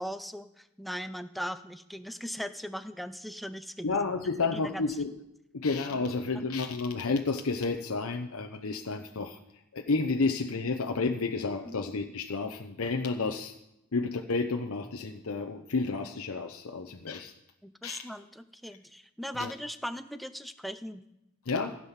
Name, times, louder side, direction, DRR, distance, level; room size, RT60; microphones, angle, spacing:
voice 1, 0.0-4.0 4.4-4.8 6.3-6.5 11.7-11.8 17.6-21.0, equal, ahead, 10 dB, 0.5 m, -39 dB
voice 2, 3.8-5.1 5.5-9.4 9.7-13.6 13.9-17.3 17.8-18.0 19.3-19.5 21.5-21.8, left 4 dB, 65° left, 3 dB, 0.7 m, -31 dB
15.5 x 7.5 x 5.7 m, 0.87 s
head